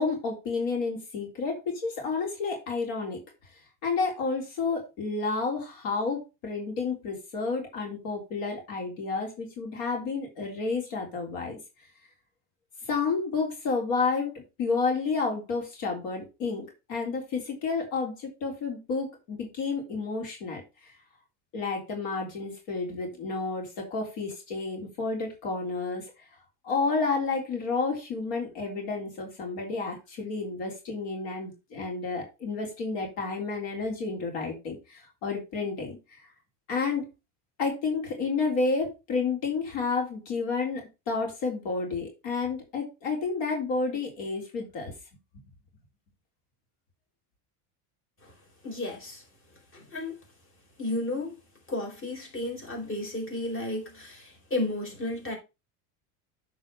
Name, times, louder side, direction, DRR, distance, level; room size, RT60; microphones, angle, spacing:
voice 1, 0.0-3.2 3.8-11.6 12.8-14.3 14.6-20.9 21.5-26.3 26.6-36.3 36.7-37.1 37.6-44.9, left 4 dB, 65° left, 3.7 m, -30 dB
voice 2, 48.6-49.2 49.7-50.2 50.8-51.3 51.7-55.4, left 2 dB, 30° left, 4.9 m, -33 dB
8.6 x 4.9 x 5.4 m
supercardioid pair, 115°, 45 cm